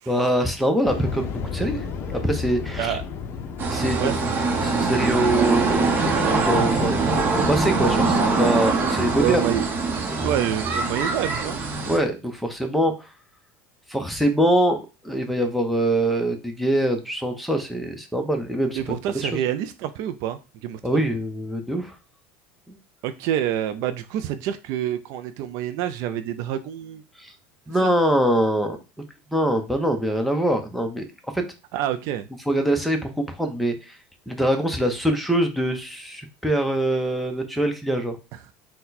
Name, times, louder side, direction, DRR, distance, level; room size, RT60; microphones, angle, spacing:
voice 1, 0.1-3.0 3.7-4.1 4.6-6.0 6.4-7.0 7.5-9.4 11.8-13.1 13.9-19.3 20.8-22.0 22.7-22.8 27.2-27.3 27.7-28.8 29.3-31.0 31.3-31.4 32.5-34.0 34.3-38.2, right 1 dB, ahead, 4 dB, 0.7 m, -23 dB
sound 1, 0.8-7.6, left 5 dB, 40° left, 0.6 m, -34 dB
sound 2, 3.6-12.0, right 3 dB, 30° right, 0.8 m, -23 dB
voice 2, 4.0-5.1 9.2-9.6 10.2-11.6 18.8-21.0 23.0-27.0 27.8-27.9 31.7-32.3, right 11 dB, 60° right, 11 dB, 0.4 m, -27 dB
4.2 x 2.2 x 4.0 m, 0.29 s
supercardioid pair, 120°, 6 cm